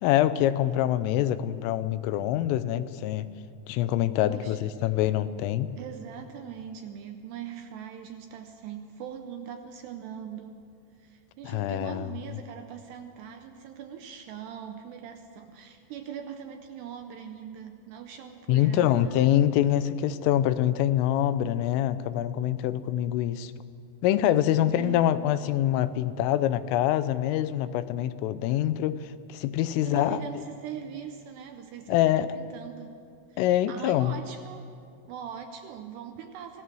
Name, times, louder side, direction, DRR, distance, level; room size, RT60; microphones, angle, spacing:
voice 1, 0.0-3.3 3.7-5.7 11.4-12.1 18.5-23.5 24.0-30.4 31.9-32.3 33.4-34.2, left 12 dB, 85° left, 13 dB, 3.3 m, -25 dB
voice 2, 4.2-4.7 5.8-10.6 11.0-19.4 24.6-25.2 29.8-33.0 33.3-34.6 35.1-36.6, right 8 dB, 75° right, 6 dB, 2.6 m, -41 dB
24.5 x 17.5 x 6.3 m, 2.4 s
omnidirectional pair, 5.7 m